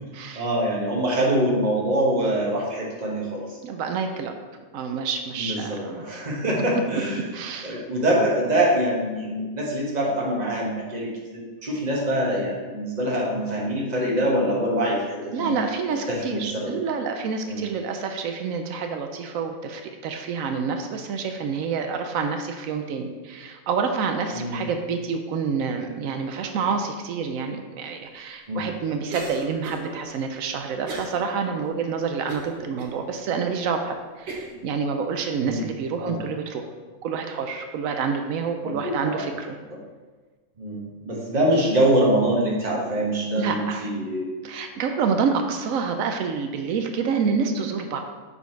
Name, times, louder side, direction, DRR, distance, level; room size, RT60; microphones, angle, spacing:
voice 1, 0.3-3.6 5.4-7.2 7.6-15.6 15.9-16.8 17.4-17.6 24.3-24.6 28.5-28.6 35.4-35.6 36.0-36.2 38.6-39.3 40.6-44.2, right 1 dB, 35° right, -3 dB, 1.3 m, -24 dB
voice 2, 3.6-4.3 4.7-6.0 7.3-7.8 15.3-36.6 37.0-39.6 43.4-43.9 44.4-48.0, right 5 dB, 85° right, 5 dB, 1.0 m, -28 dB
Cough, 29.1-29.9 30.9-31.2 31.6-31.7 32.3-32.9 33.5-33.6 34.3-34.6, right 2 dB, 55° right, 1.2 m, -35 dB
7.0 x 4.2 x 4.5 m, 1.3 s
omnidirectional pair, 1.4 m